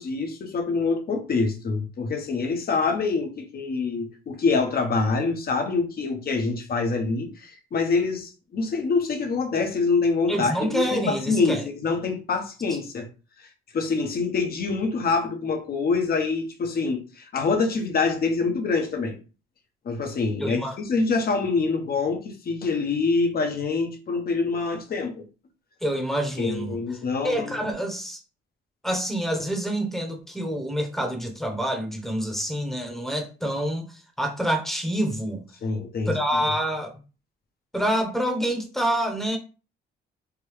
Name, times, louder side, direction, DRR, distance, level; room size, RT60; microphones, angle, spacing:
voice 1, 0.0-13.1 13.7-19.2 19.8-25.2 26.4-27.7 35.6-36.1, left 4 dB, 50° left, 0.9 m, -25 dB
voice 2, 10.3-11.6 20.4-20.8 25.8-26.8 27.2-28.2 28.8-35.4 36.1-37.0 37.7-39.4, equal, ahead, 0.9 m, -27 dB
3.5 x 2.2 x 3.1 m
cardioid pair, 90°, 20 cm